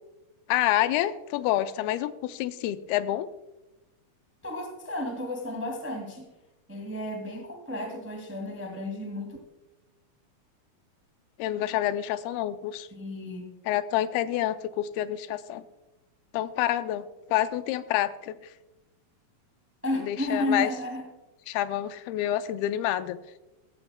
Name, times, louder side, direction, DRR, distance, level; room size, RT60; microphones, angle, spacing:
voice 1, 0.5-3.3 11.4-12.9 13.7-15.6 16.3-18.5 20.0-20.7 21.5-23.2, left 13 dB, 85° left, 12 dB, 2.4 m, -28 dB
voice 2, 4.4-6.3 6.7-9.4 12.9-13.5 19.8-21.0, left 1 dB, 10° right, 2 dB, 0.8 m, -32 dB
16.0 x 14.0 x 2.2 m, 1.0 s
omnidirectional pair, 4.3 m